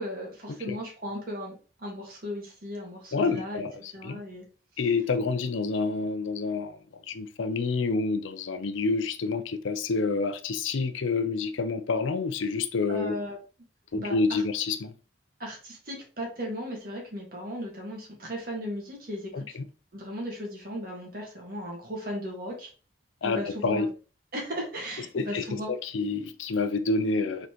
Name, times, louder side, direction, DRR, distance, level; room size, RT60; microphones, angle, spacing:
voice 1, 0.0-1.5 1.8-3.6 3.9-4.4 12.9-13.4 14.0-14.4 15.4-19.6 19.9-22.7 23.2-23.9 24.3-25.7, equal, 50° right, 1.7 m, -36 dB
voice 2, 3.1-4.2 4.8-6.8 7.1-13.2 13.9-14.9 19.3-19.7 23.2-23.9 25.1-27.5, left 4 dB, 80° left, 0.5 m, -28 dB
4.2 x 3.9 x 2.9 m
head